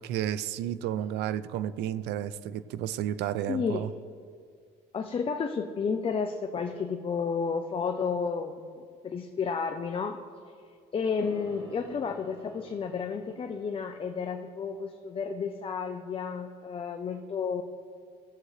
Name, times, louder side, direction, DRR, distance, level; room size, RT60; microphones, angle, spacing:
voice 1, 0.0-3.9, right 11 dB, 85° right, 15 dB, 0.5 m, -32 dB
voice 2, 3.5-3.9 4.9-10.2 10.9-17.6, left 5 dB, 35° left, 5 dB, 0.6 m, -32 dB
sound 1, 11.2-15.3, equal, 30° right, 2.9 m, -52 dB
18.0 x 7.7 x 3.2 m, 2.2 s
cardioid pair, 110°, 17 cm